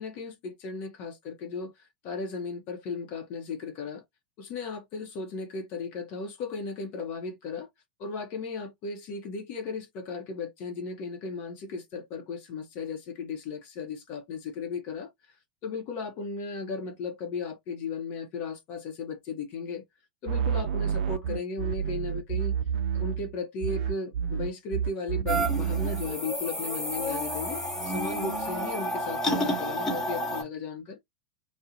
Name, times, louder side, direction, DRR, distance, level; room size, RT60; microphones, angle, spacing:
voice 1, 0.0-4.0 4.4-7.7 8.0-15.4 15.6-19.8 20.2-22.5 22.9-31.0, left 4 dB, 45° left, 0.7 m, -36 dB
sound 1, 20.3-23.3 23.6-26.2, right 8 dB, 60° right, 0.3 m, -29 dB
sound 2, 25.3-30.4, equal, 10° left, 1.1 m, -30 dB
2.4 x 2.1 x 2.6 m
figure-of-eight pair, 90°, 5 cm